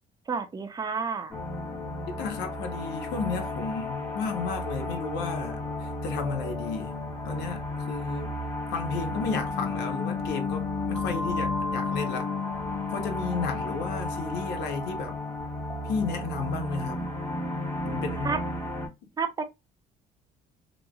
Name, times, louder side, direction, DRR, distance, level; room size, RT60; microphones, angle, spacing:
voice 1, 0.3-1.4 13.5-13.7 18.2-18.4 19.2-19.4, right 5 dB, 20° right, 0.5 m, -31 dB
sound 1, 1.3-18.9, left 2 dB, 15° left, 1.3 m, -33 dB
voice 2, 2.1-6.9 7.3-8.4 8.7-12.3 12.9-15.2 15.9-17.1 17.8-18.4, left 4 dB, 85° left, 0.8 m, -33 dB
3.0 x 2.5 x 2.3 m
cardioid pair, 110°, 17 cm